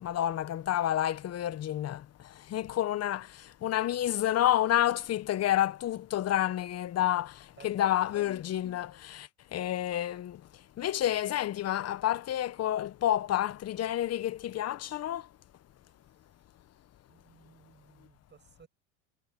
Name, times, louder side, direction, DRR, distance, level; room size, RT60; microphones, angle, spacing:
voice 1, 0.0-10.4 10.8-15.3, left 12 dB, 35° left, 1.2 m, -29 dB
voice 2, 7.6-8.2 17.1-18.7, right 6 dB, 25° right, 6.1 m, -58 dB
hypercardioid pair, 95°, 42 cm